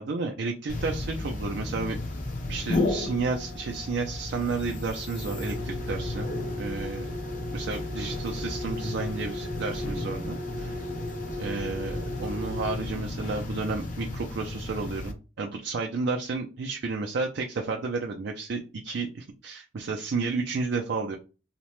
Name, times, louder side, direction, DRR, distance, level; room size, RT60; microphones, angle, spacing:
voice 1, 0.0-2.0 2.5-6.3 6.6-7.1 7.5-10.7 11.4-21.2, right 4 dB, 65° right, 2 dB, 0.4 m, -32 dB
sound 1, 0.7-15.1, left 2 dB, 45° left, 0.6 m, -33 dB
2.8 x 2.1 x 3.0 m, 0.32 s
head